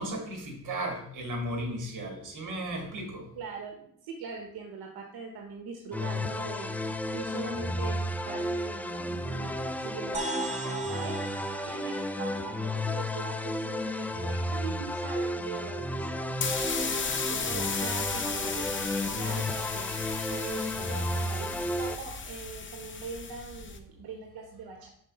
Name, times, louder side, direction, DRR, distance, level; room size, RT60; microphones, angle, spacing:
voice 1, 0.0-3.3, right 1 dB, 55° right, 2 dB, 2.2 m, -35 dB
voice 2, 3.3-6.8 7.1-17.0 17.3-24.9, right 4 dB, 80° right, 3 dB, 1.0 m, -42 dB
sound 1, 5.9-22.0, left 1 dB, 5° left, 0.3 m, -33 dB
sound 2, 10.1-13.9, right 2 dB, 20° right, 1.0 m, -39 dB
sound 3, 16.3-23.8, left 5 dB, 30° left, 0.8 m, -35 dB
5.3 x 4.7 x 5.4 m, 0.68 s
cardioid pair, 100°, 36 cm